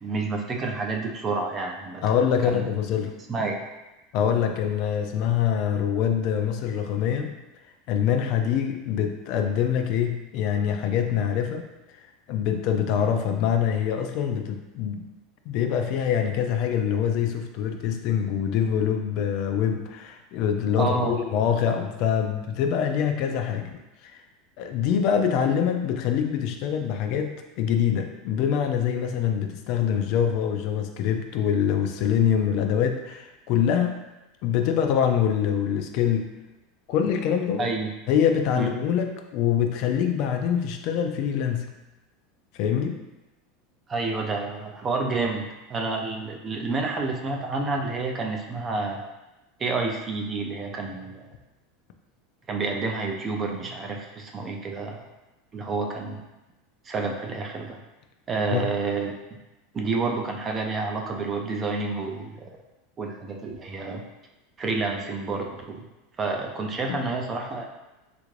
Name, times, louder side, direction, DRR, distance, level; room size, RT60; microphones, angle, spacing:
voice 1, 0.0-2.0 2.5-2.6 3.3-3.6 20.8-21.2 37.6-37.9 38.5-38.7 43.9-49.0 49.6-51.2 52.5-55.1 55.5-56.2 56.8-57.8 58.3-59.1 59.7-62.5 63.0-64.0 64.6-65.9 66.2-67.6, right 3 dB, 20° right, 1 dB, 0.4 m, -29 dB
voice 2, 2.0-3.1 4.1-7.3 7.9-11.7 11.9-15.1 15.5-24.2 24.6-34.0 34.4-36.3 36.9-37.7 38.1-41.7 42.5-43.0 58.5-58.7 66.9-67.0, left 8 dB, 50° left, 5 dB, 0.3 m, -25 dB
3.3 x 2.5 x 3.1 m, 1.0 s
supercardioid pair, 150°, 0 cm